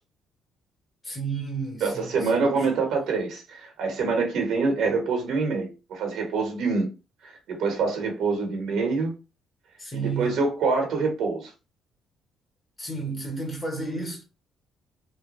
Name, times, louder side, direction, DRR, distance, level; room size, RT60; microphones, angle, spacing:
voice 1, 1.0-2.9 9.8-10.5 12.8-14.2, right 4 dB, 20° left, 1.1 m, -32 dB
voice 2, 1.8-6.9 7.2-9.1 9.9-11.5, right 4 dB, 75° right, 1.3 m, -26 dB
3.3 x 2.2 x 3.0 m
cardioid pair, 130°, 0 cm